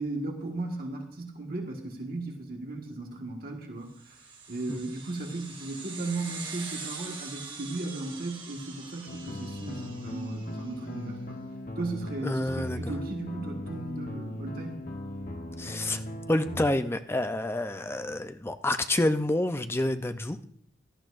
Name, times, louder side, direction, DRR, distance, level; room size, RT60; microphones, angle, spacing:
voice 1, 0.0-4.2 4.5-11.4 11.7-14.8, right 2 dB, 50° right, 1 dB, 1.6 m, -36 dB
sound 1, 4.0-10.8, right 4 dB, 25° right, 1.8 m, -43 dB
sound 2, 9.1-16.7, left 1 dB, 45° left, 1.1 m, -38 dB
voice 2, 12.2-12.9 15.6-16.0 16.3-20.4, left 1 dB, 15° left, 9 dB, 0.5 m, -28 dB
17.0 x 12.0 x 2.5 m, 0.68 s
head